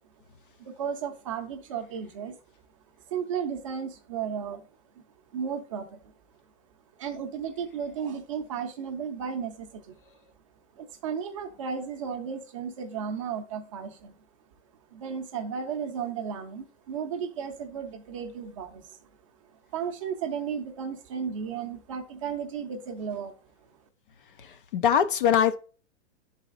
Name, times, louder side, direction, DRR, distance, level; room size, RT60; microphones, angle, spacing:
voice 1, 0.6-2.4 3.1-4.7 5.3-6.0 7.0-10.0 10.8-14.1 14.9-19.1 19.4-23.3, right 7 dB, 30° right, 0.6 m, -34 dB
voice 2, 24.4-25.6, left 8 dB, 50° left, 0.5 m, -23 dB
11.0 x 4.1 x 2.4 m
hypercardioid pair, 170°, 35 cm